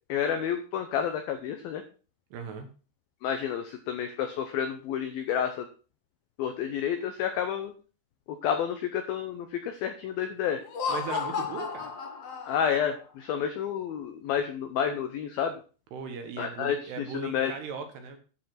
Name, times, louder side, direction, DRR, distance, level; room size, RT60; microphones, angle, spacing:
voice 1, 0.1-1.8 3.2-5.7 6.4-7.7 8.4-10.6 12.4-15.5 16.4-16.8 17.3-17.5, left 8 dB, 80° left, 7 dB, 2.1 m, -30 dB
voice 2, 2.3-2.7 10.9-11.9 15.9-18.2, right 5 dB, 70° right, 6 dB, 3.1 m, -38 dB
Laughter, 10.6-12.9, left 6 dB, 65° left, 1.6 m, -33 dB
12.0 x 5.5 x 5.8 m, 0.37 s
omnidirectional pair, 5.5 m